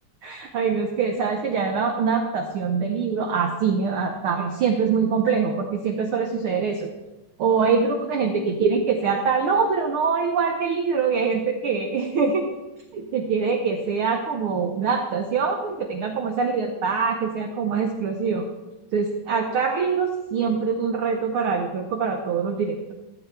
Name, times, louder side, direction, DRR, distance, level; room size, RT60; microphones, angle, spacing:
voice 1, 0.2-6.9 7.4-12.5 12.9-18.5 18.9-22.9, right 5 dB, 85° right, 4 dB, 1.1 m, -24 dB
14.0 x 8.0 x 4.5 m, 1.1 s
omnidirectional pair, 3.5 m